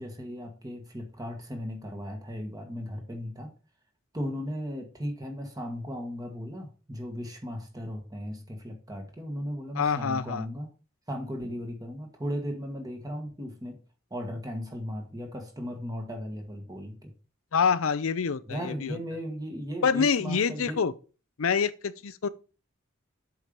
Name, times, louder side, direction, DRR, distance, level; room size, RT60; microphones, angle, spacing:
voice 1, 0.0-3.5 4.1-10.7 11.1-13.8 14.1-17.1 18.5-20.8, equal, 20° right, 1.5 m, -36 dB
voice 2, 9.7-10.5 17.5-19.0 19.8-20.9 21.4-22.3, left 6 dB, 80° left, 0.6 m, -26 dB
7.7 x 4.6 x 5.2 m
head